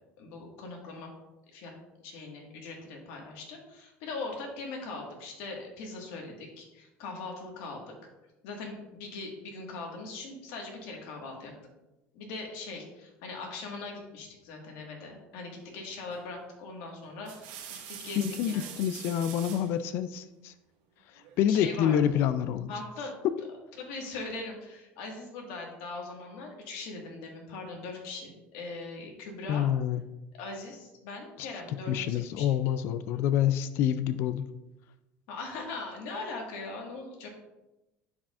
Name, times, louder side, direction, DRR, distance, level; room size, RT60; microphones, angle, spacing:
voice 1, 0.2-1.2 1.5-1.7 2.0-7.9 8.4-11.5 12.1-18.9 21.5-22.0 22.7-23.1 23.8-29.7 30.4-32.5 35.3-37.3, left 3 dB, 80° left, 1 dB, 1.7 m, -40 dB
sound 1, 16.1-16.4 17.0-19.7 21.2-21.9, right 9 dB, 90° right, 1.1 m, -45 dB
voice 2, 18.1-20.5 21.4-22.7 29.5-30.0 31.4-31.5 31.9-34.5, left 10 dB, 60° left, 12 dB, 0.3 m, -27 dB
10.5 x 4.9 x 2.5 m, 0.99 s
cardioid pair, 135°, 5 cm